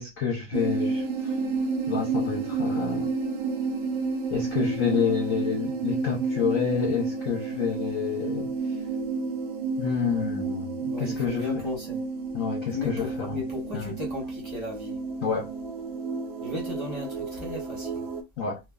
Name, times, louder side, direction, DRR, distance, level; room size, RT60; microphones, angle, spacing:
voice 1, 0.0-1.4 1.9-3.1 4.3-8.9 9.8-11.7 12.3-13.4 13.7-13.9 15.2-15.5 18.4-18.6, left 7 dB, 65° left, 0.8 m, -29 dB
sound 1, 0.5-18.2, right 4 dB, 90° right, 1.5 m, -31 dB
voice 2, 10.9-12.0 12.7-15.0 16.4-18.0, left 2 dB, 30° left, 0.5 m, -35 dB
3.3 x 2.1 x 2.2 m
omnidirectional pair, 2.1 m